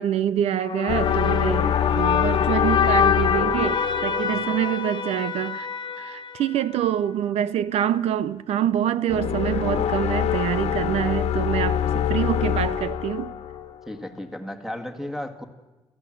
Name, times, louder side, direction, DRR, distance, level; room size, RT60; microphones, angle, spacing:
voice 1, 0.0-5.7 6.0-13.3, right 10 dB, 80° right, 0.7 m, -26 dB
sound 1, 0.6-7.0, left 7 dB, 50° left, 1.4 m, -25 dB
sound 2, 0.9-4.6 9.1-13.9, left 10 dB, 80° left, 1.4 m, -25 dB
voice 2, 13.9-15.4, left 1 dB, 5° right, 1.9 m, -34 dB
28.0 x 15.0 x 7.7 m
cardioid pair, 135°, 11 cm